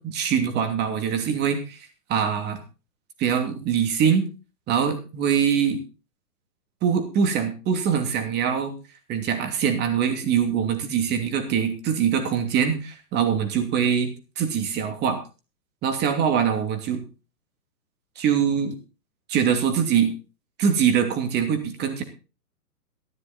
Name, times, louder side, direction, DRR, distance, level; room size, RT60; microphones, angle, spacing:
voice 1, 0.0-2.6 3.2-4.2 4.7-5.8 6.8-8.7 9.1-14.1 14.4-15.2 15.8-17.0 18.2-18.7 19.3-20.1 20.6-22.0, right 7 dB, 20° right, 7 dB, 2.8 m, -23 dB
14.5 x 11.0 x 4.3 m, 0.32 s
hypercardioid pair, 145°, 48 cm